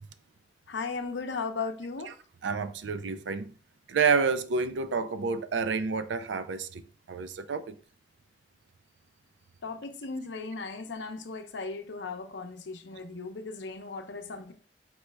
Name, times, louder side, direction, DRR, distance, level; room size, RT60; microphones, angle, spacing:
voice 1, 0.7-2.1 9.6-14.5, left 4 dB, 75° left, 0.6 m, -36 dB
voice 2, 2.4-3.5 3.9-7.8, right 5 dB, 80° right, 0.4 m, -29 dB
4.5 x 3.2 x 3.3 m
head